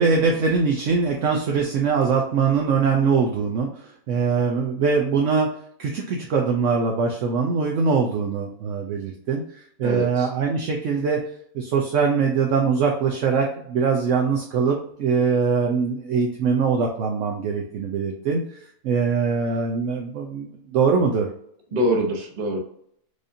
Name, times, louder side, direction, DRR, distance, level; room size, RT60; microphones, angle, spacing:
voice 1, 0.0-5.5 5.8-11.3 11.5-18.4 18.8-21.3, right 5 dB, 65° right, 1 dB, 0.8 m, -22 dB
voice 2, 9.8-10.3 21.7-22.6, equal, 40° right, 0 dB, 0.9 m, -24 dB
4.9 x 2.6 x 2.6 m, 0.68 s
omnidirectional pair, 1.6 m